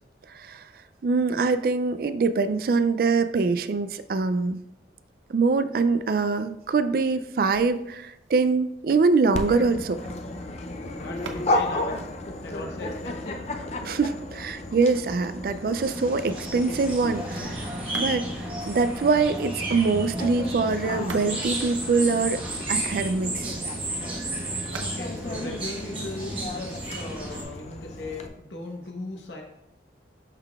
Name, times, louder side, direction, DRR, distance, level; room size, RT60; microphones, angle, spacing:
voice 1, 1.0-4.6 5.3-10.0 13.8-17.7 17.9-22.4 22.7-23.5, right 4 dB, 55° right, 12 dB, 0.3 m, -24 dB
sound 1, 7.4-13.4 17.8-18.6 20.7-22.6 24.6-26.6, right 3 dB, 90° right, 0.6 m, -46 dB
Dog, 9.3-28.3, left 1 dB, 35° left, 0.4 m, -34 dB
voice 2, 10.8-12.1 12.4-13.5 24.8-29.4, left 2 dB, 80° left, 1 dB, 0.9 m, -38 dB
sound 2, 15.8-27.4, right 1 dB, 30° right, 1.3 m, -33 dB
11.0 x 3.8 x 2.3 m, 0.82 s
head